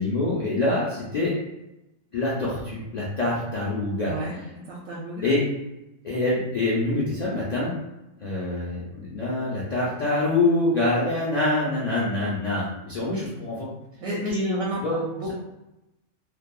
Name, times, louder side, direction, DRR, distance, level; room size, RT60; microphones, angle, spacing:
voice 1, 0.0-1.4 2.1-4.1 5.2-5.4 6.0-7.7 8.2-13.7 14.3-15.3, left 2 dB, 65° left, -7 dB, 0.4 m, -25 dB
voice 2, 4.0-5.3 14.0-14.8 15.1-15.3, equal, 90° right, -5 dB, 1.0 m, -32 dB
2.6 x 2.2 x 2.2 m, 0.94 s
omnidirectional pair, 1.4 m